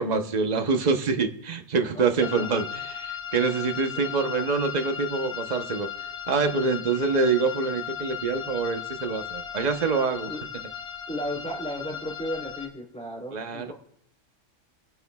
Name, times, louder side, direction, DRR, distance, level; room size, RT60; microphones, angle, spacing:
voice 1, 0.0-5.9 6.3-10.3 13.3-13.7, right 4 dB, 35° right, 6 dB, 0.9 m, -26 dB
voice 2, 1.9-2.5 3.9-4.2 10.2-10.4 11.1-13.7, equal, 5° left, -1 dB, 2.9 m, -35 dB
sound 1, 2.2-12.7, left 9 dB, 55° left, 1.5 m, -36 dB
24.5 x 9.6 x 2.3 m, 0.71 s
omnidirectional pair, 1.3 m